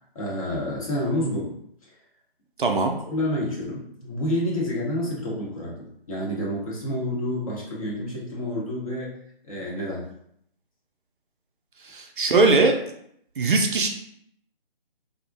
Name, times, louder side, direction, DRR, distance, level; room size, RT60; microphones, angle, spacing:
voice 1, 0.1-2.0 3.1-10.1, left 1 dB, 35° left, -4 dB, 0.8 m, -29 dB
voice 2, 2.6-2.9 11.9-12.8 13.4-13.9, right 3 dB, 60° right, 3 dB, 0.4 m, -20 dB
2.4 x 2.0 x 2.5 m, 0.70 s
figure-of-eight pair, 150°, 30 cm